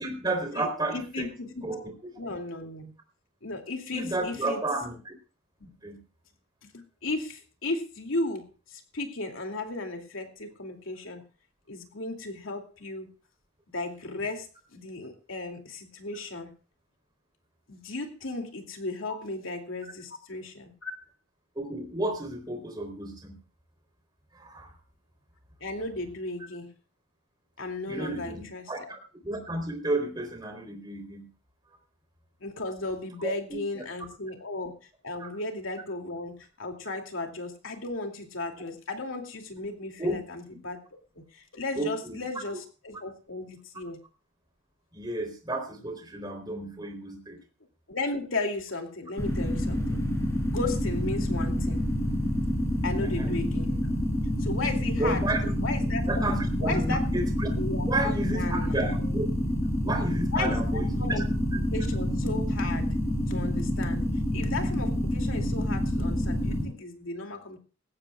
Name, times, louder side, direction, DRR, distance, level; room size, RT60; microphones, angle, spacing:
voice 1, 0.0-1.3 1.6-1.9 2.2-2.3 3.9-5.1 5.8-6.0 19.1-19.2 21.6-23.4 24.3-24.7 27.9-31.3 33.2-33.8 35.2-35.3 40.0-40.2 41.8-42.2 44.9-47.4 53.0-53.3 55.0-55.6 56.1-57.6 57.9-59.3 59.8-61.2 61.5-61.6, right 2 dB, 20° right, 4 dB, 3.7 m, -32 dB
voice 2, 0.5-1.7 2.2-2.9 3.4-4.6 5.6-5.7 6.6-11.2 11.7-13.1 13.7-14.5 14.7-16.5 17.7-20.9 25.6-26.7 27.6-28.9 32.4-34.7 35.0-40.8 41.1-44.0 47.9-50.0 50.5-51.8 52.8-53.9 54.4-55.2 55.6-56.3 56.6-57.0 57.6-58.8 60.3-61.2 61.7-62.9 63.3-64.0 64.3-67.6, left 2 dB, 85° left, 3 dB, 2.7 m, -35 dB
sound 1, 49.2-66.6, left 1 dB, 15° left, 4.9 m, -28 dB
19.5 x 16.0 x 2.4 m, 0.35 s
head